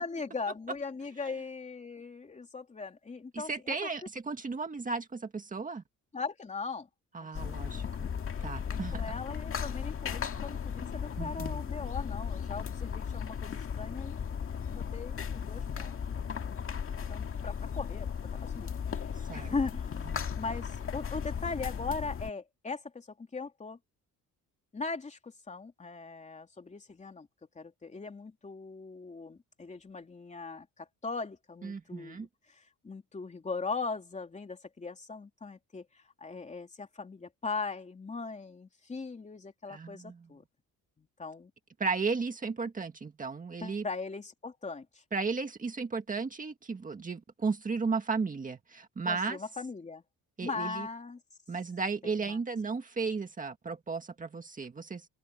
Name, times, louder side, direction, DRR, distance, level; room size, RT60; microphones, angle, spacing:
voice 1, 0.0-3.5 6.1-6.9 7.2-8.0 8.7-14.2 14.7-16.0 17.1-18.1 18.4-18.7 19.3-20.0 20.3-23.8 24.7-27.3 27.5-40.4 41.0-41.5 43.6-45.0 49.0-50.0 50.4-51.2 52.0-52.4, left 4 dB, 20° left, 3.0 m, -39 dB
voice 2, 3.3-5.8 7.1-7.9 8.4-9.0 11.2-11.6 19.2-19.5 20.1-20.3 31.6-32.3 39.7-40.3 41.8-43.9 45.1-49.4 50.4-50.9 51.5-55.1, right 4 dB, 25° right, 1.8 m, -34 dB
sound 1, 7.3-22.3, left 7 dB, 40° left, 1.9 m, -36 dB
open air
cardioid pair, 155°, 35 cm